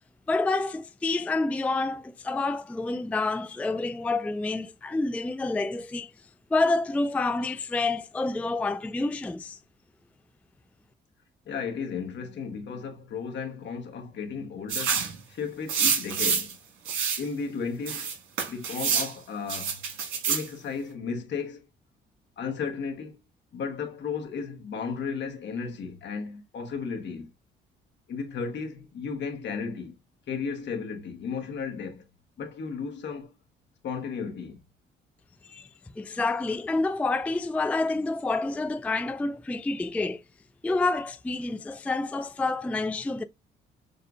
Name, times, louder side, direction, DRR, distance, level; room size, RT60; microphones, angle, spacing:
voice 1, 0.3-6.1 6.5-9.6 35.4-35.7 36.0-40.2 40.6-43.2, left 3 dB, 5° left, 0.3 m, -28 dB
voice 2, 11.5-16.6 17.2-18.1 18.5-19.8 20.3-21.7 22.4-23.2 23.5-27.3 28.1-29.9 30.3-32.1 32.4-33.3 33.8-34.6, left 5 dB, 65° left, 1.2 m, -34 dB
sound 1, 14.7-15.2 15.7-16.5 16.9-17.2 17.9-19.1 19.5-20.5, right 6 dB, 90° right, 1.8 m, -27 dB
6.5 x 2.4 x 2.5 m
cardioid pair, 90°, 20 cm